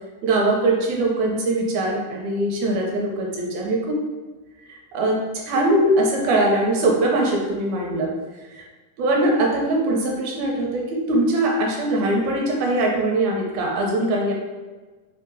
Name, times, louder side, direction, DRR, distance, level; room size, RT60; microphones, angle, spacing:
voice 1, 0.2-4.0 4.7-5.2 5.5-8.1 8.5-8.7 9.0-14.3, right 1 dB, 80° right, 0 dB, 2.0 m, -21 dB
4.6 x 2.8 x 3.8 m, 1.3 s
omnidirectional pair, 3.6 m